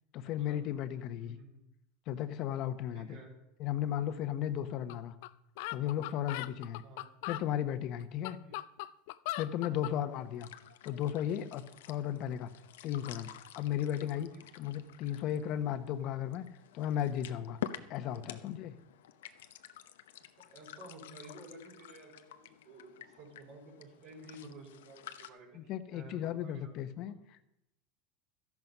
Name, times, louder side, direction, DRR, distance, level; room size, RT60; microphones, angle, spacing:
voice 1, 0.1-1.4 2.1-3.2 3.6-5.1 5.7-6.8 7.3-8.4 9.3-10.5 10.8-12.5 12.8-13.3 13.5-14.3 14.5-16.4 16.7-17.6 17.9-18.7 25.5-27.5, left 10 dB, 50° left, 12 dB, 1.1 m, -35 dB
voice 2, 1.2-1.7 2.9-3.3 6.8-7.1 8.4-8.5 9.6-9.8 14.3-14.4 18.1-18.3 20.5-26.8, right 2 dB, 65° right, -7 dB, 5.4 m, -52 dB
sound 1, 4.9-5.0 5.2-5.3 5.6-7.5 8.0-10.0, left 17 dB, 70° left, 0.5 m, -39 dB
sound 2, 10.1-25.3, left 11 dB, 90° left, 0.8 m, -49 dB
13.5 x 11.0 x 5.5 m, 0.86 s
supercardioid pair, 120°, 0 cm